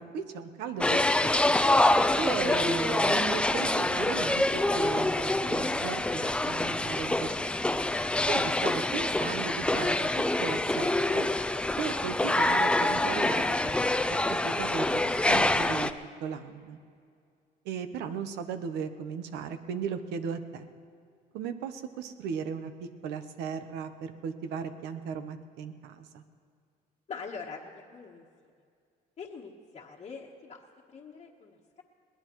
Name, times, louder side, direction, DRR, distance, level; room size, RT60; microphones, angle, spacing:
voice 1, 0.0-1.6 2.2-7.3 8.3-10.1 10.4-11.3 11.8-15.9 16.2-16.8 17.6-20.7 21.3-22.7 23.0-26.2, right 6 dB, 85° right, 9 dB, 1.0 m, -36 dB
sound 1, 0.8-15.9, left 2 dB, 5° left, 0.4 m, -26 dB
voice 2, 27.1-28.2 29.2-30.6 30.9-31.8, left 5 dB, 40° left, -4 dB, 1.3 m, -43 dB
22.0 x 18.0 x 3.1 m, 2.2 s
cardioid pair, 110°, 17 cm